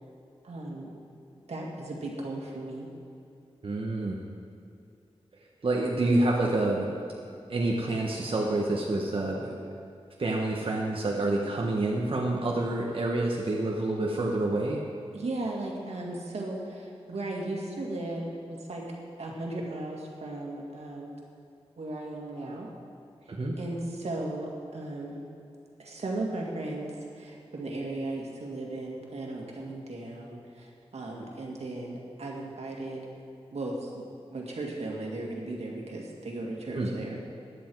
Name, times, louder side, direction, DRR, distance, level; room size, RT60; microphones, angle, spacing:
voice 1, 0.4-0.9 1.5-2.9 15.1-18.8 19.2-21.1 21.8-22.7 23.6-25.2 25.8-33.1 33.5-37.3, right 2 dB, 85° right, -2 dB, 2.2 m, -36 dB
voice 2, 3.6-4.2 5.6-6.9 7.5-9.7 10.2-14.8 23.3-23.6 36.7-36.9, right 2 dB, 55° right, -3 dB, 1.3 m, -28 dB
15.0 x 10.0 x 4.7 m, 2.5 s
wide cardioid pair, 85°, 11 cm